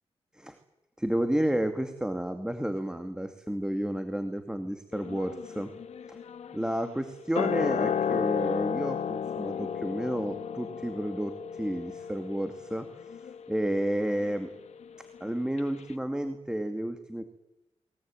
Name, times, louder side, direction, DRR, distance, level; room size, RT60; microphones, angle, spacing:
voice 1, 1.0-5.7 6.1-6.2 6.5-12.9 13.5-14.5 15.2-17.2, right 1 dB, 5° right, 7 dB, 2.2 m, -31 dB
sound 1, 4.9-15.3 15.6-15.7, left 7 dB, 80° left, 1.3 m, -34 dB
22.5 x 21.5 x 9.0 m, 0.93 s
cardioid pair, 80°, 11 cm